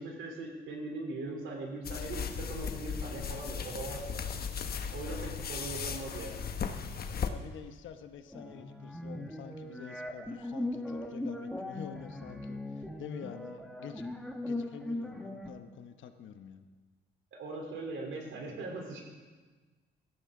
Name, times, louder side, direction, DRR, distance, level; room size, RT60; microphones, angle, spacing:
voice 1, 0.0-4.2 4.9-6.4 17.3-19.0, right 2 dB, 75° right, 1 dB, 3.5 m, -40 dB
sound 1, 1.8-7.3, left 7 dB, 50° left, 1.1 m, -36 dB
voice 2, 7.2-14.1 14.5-16.7, left 8 dB, 75° left, 8 dB, 1.1 m, -47 dB
sound 2, 8.3-15.5, left 1 dB, ahead, 1.4 m, -39 dB
17.5 x 14.0 x 3.8 m, 1.4 s
cardioid pair, 90°, 20 cm